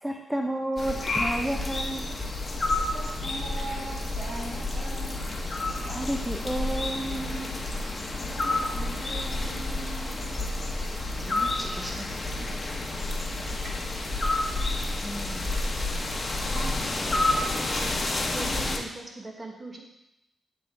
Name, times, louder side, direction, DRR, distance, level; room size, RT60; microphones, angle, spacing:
voice 1, 0.0-2.3 5.5-7.6 11.2-12.2 15.0-15.6, right 1 dB, 10° right, 2 dB, 0.6 m, -33 dB
sound 1, 0.8-18.8, left 2 dB, 35° left, 1.0 m, -30 dB
voice 2, 2.9-5.2 8.2-10.4 12.5-12.8 13.4-14.2, right 2 dB, 65° right, -3 dB, 1.8 m, -41 dB
voice 3, 16.5-17.4 18.3-19.8, right 2 dB, 35° right, 1 dB, 1.2 m, -40 dB
8.3 x 3.8 x 3.3 m, 0.87 s
supercardioid pair, 50°, 0 cm